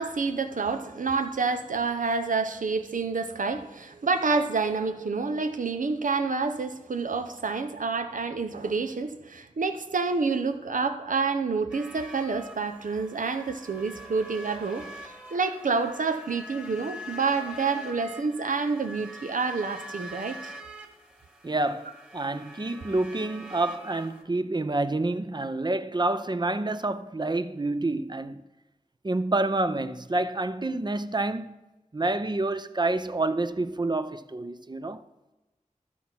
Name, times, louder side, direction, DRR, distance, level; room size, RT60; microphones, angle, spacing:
voice 1, 0.0-20.5, right 4 dB, 90° right, 0.7 m, -28 dB
sound 1, 11.7-24.2, equal, 5° right, 1.8 m, -44 dB
voice 2, 21.4-28.4 29.0-31.6 31.9-35.0, right 2 dB, 35° right, 0.5 m, -28 dB
12.5 x 4.2 x 5.9 m
wide cardioid pair, 40°, 13 cm